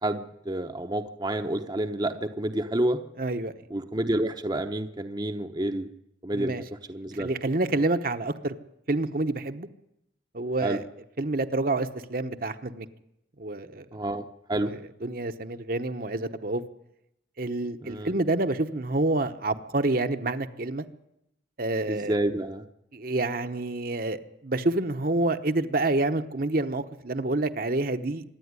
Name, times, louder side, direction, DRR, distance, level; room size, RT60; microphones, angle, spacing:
voice 1, 0.0-3.0 3.7-5.9 6.2-6.5 6.9-7.3 10.6-10.8 13.9-14.7 17.8-18.1 21.9-22.6, right 1 dB, 25° right, 6 dB, 0.8 m, -29 dB
voice 2, 3.2-3.5 6.3-6.6 7.2-8.5 8.9-9.7 10.3-10.9 11.2-12.9 13.4-13.8 14.5-16.6 17.4-20.9 21.6-22.2 22.9-28.2, right 2 dB, 55° right, 8 dB, 1.0 m, -28 dB
25.0 x 10.5 x 9.7 m, 0.82 s
head